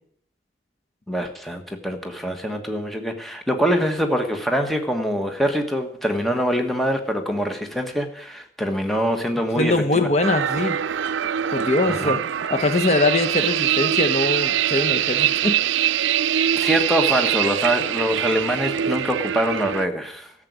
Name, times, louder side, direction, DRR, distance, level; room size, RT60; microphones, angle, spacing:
voice 1, 1.1-10.1 11.9-12.2 16.5-20.3, equal, ahead, 4 dB, 1.3 m, -24 dB
voice 2, 9.6-10.8 11.5-12.2 12.5-15.6, left 2 dB, 35° left, 8 dB, 1.1 m, -22 dB
sound 1, 10.2-19.9, right 10 dB, 85° right, 0.4 m, -23 dB
13.5 x 7.6 x 9.3 m, 0.65 s
head